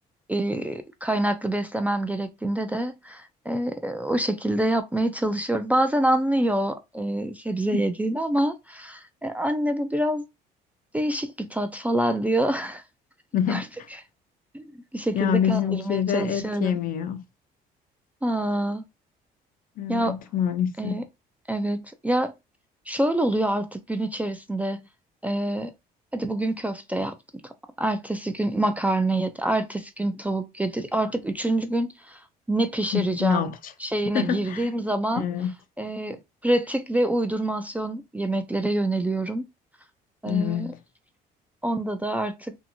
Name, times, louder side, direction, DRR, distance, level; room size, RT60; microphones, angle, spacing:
voice 1, 0.3-10.2 10.9-12.8 13.5-13.6 14.5-14.6 14.9-16.7 18.2-18.8 19.9-20.2 20.8-21.0 21.5-22.3 22.9-24.8 25.2-25.7 26.1-27.1 27.8-32.2 32.5-33.4 33.8-35.2 35.8-36.2 36.4-39.4 40.2-40.7 41.6-42.6, right 1 dB, 10° right, 0.3 m, -26 dB
voice 2, 13.3-13.7 15.1-17.2 19.8-21.0 32.9-33.7 34.1-34.7 35.1-35.5 40.2-40.8, left 8 dB, 55° left, 0.4 m, -26 dB
2.7 x 2.4 x 2.6 m
cardioid pair, 110°, 17 cm